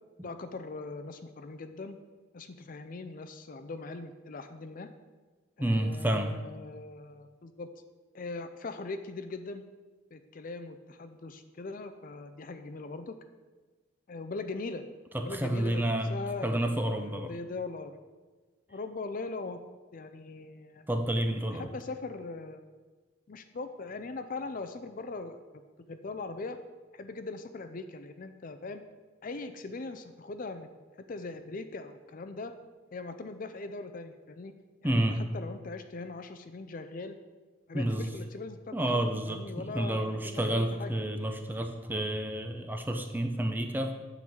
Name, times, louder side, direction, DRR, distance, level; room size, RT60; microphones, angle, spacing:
voice 1, 0.2-2.0 2.3-4.9 5.6-7.7 8.1-9.6 10.1-13.2 14.1-14.8 15.2-18.0 18.7-19.6 19.9-20.8 21.5-22.6 23.3-25.4 25.9-26.6 26.9-28.8 29.2-30.7 31.1-32.5 32.9-34.5 34.8-37.2 37.7-39.0 39.3-40.9, left 3 dB, 45° left, 9 dB, 0.4 m, -40 dB
voice 2, 5.6-6.4 15.1-16.1 16.4-17.3 20.9-21.7 34.8-35.2 37.7-38.1 38.7-39.4 39.7-43.9, right 1 dB, 10° right, 5 dB, 0.6 m, -30 dB
9.2 x 3.9 x 7.1 m, 1.3 s
head